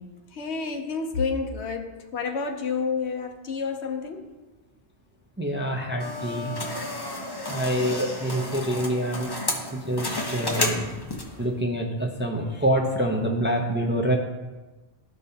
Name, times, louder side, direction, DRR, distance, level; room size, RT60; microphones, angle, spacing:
voice 1, 0.3-4.3 7.7-8.0, left 5 dB, 80° left, 1.0 m, -30 dB
voice 2, 5.4-6.5 7.5-9.3 9.7-10.9 11.4-14.2, right 1 dB, 15° right, 0.6 m, -26 dB
sound 1, 6.0-11.5, left 2 dB, 25° left, 0.8 m, -31 dB
12.5 x 5.3 x 2.8 m
omnidirectional pair, 1.1 m